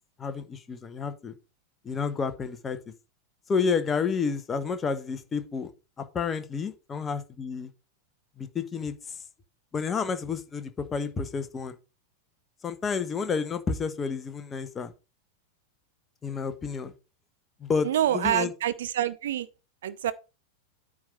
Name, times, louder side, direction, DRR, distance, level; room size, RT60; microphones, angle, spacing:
voice 1, 0.2-1.3 1.8-2.8 3.5-5.7 6.0-7.7 8.4-8.9 9.7-11.7 12.6-14.9 16.2-16.9 17.6-18.5, left 5 dB, 20° left, 1.0 m, -30 dB
voice 2, 17.8-19.5 19.8-20.1, right 11 dB, 60° right, 0.6 m, -26 dB
9.3 x 3.7 x 5.7 m
figure-of-eight pair, 90°, 0 cm